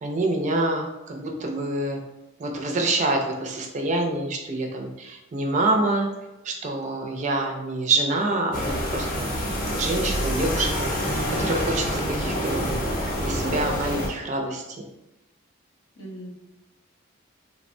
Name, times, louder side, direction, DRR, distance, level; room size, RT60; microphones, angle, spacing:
voice 1, 0.0-2.0 2.4-6.1 6.4-10.9 11.3-12.6 13.2-14.9, right 2 dB, 35° right, 2 dB, 0.3 m, -26 dB
sound 1, 8.5-14.1, equal, 40° left, 0.6 m, -27 dB
voice 2, 15.9-16.3, equal, 80° left, -3 dB, 0.8 m, -41 dB
3.1 x 2.1 x 2.5 m, 1.0 s
head